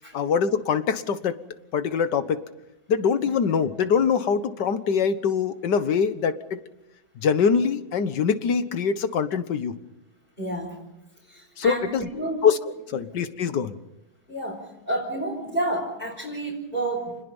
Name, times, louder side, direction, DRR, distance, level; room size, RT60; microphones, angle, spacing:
voice 1, 0.1-1.3 1.7-2.4 2.9-6.6 7.2-9.8 11.6-12.1 12.4-12.6 12.9-13.8, left 6 dB, 60° left, 11 dB, 1.8 m, -23 dB
voice 2, 10.4-10.8 11.2-12.4 14.3-17.2, right 1 dB, 25° left, -3 dB, 5.3 m, -30 dB
29.5 x 20.5 x 5.5 m, 0.92 s
omnidirectional pair, 2.1 m